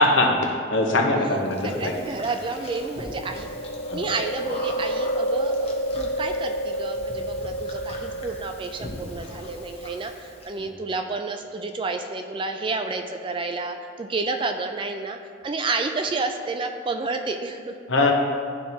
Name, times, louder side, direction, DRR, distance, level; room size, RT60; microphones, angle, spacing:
voice 1, 0.0-2.2 3.9-4.0 17.9-18.1, left 2 dB, 70° left, 1 dB, 0.9 m, -21 dB
Chewing mastication, 1.5-10.5, equal, 30° left, 0.8 m, -30 dB
voice 2, 1.6-3.5 3.9-17.7, right 3 dB, 25° right, 6 dB, 0.3 m, -30 dB
12.0 x 4.3 x 2.8 m, 2.2 s
head